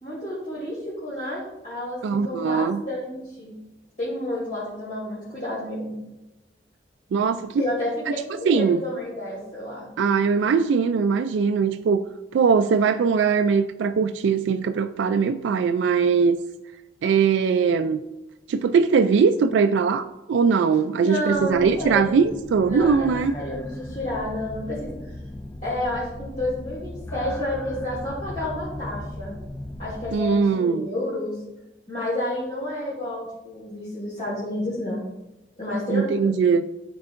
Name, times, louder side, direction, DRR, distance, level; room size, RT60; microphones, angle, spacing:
voice 1, 0.0-2.0 2.2-3.6 4.0-6.0 7.6-9.9 21.0-22.2 22.6-25.1 25.6-29.3 29.8-31.4 31.9-35.0 35.6-36.4, left 1 dB, 45° left, -10 dB, 2.7 m, -30 dB
voice 2, 2.0-2.8 7.1-7.6 8.4-8.8 10.0-12.0 12.3-16.4 17.0-18.0 18.5-23.3 30.1-30.9 35.9-36.6, right 5 dB, 85° right, 9 dB, 0.3 m, -21 dB
sound 1, 21.3-30.2, left 1 dB, 15° left, 0.4 m, -37 dB
12.5 x 4.6 x 2.5 m, 0.98 s
head